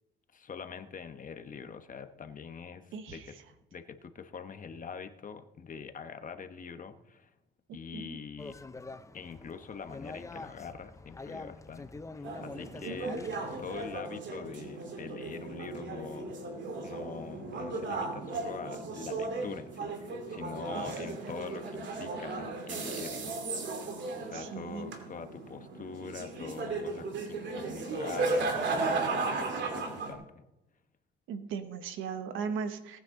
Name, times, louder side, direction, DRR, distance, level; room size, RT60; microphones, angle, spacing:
voice 1, 0.3-3.4 3.7-7.3 7.7-8.6 9.1-11.9 12.2-13.1 13.6-16.3 16.8-23.4 24.2-30.4, left 6 dB, 40° left, 7 dB, 1.2 m, -44 dB
voice 2, 2.9-3.3 7.9-8.2 12.9-13.2 20.7-20.9 24.3-24.9 31.3-33.0, right 6 dB, 90° right, 9 dB, 1.2 m, -38 dB
sound 1, 8.4-14.0, left 3 dB, 15° left, 0.6 m, -45 dB
sound 2, 12.2-30.1, right 3 dB, 65° right, 2.7 m, -36 dB
18.5 x 9.3 x 3.8 m, 0.94 s
cardioid pair, 90°, 20 cm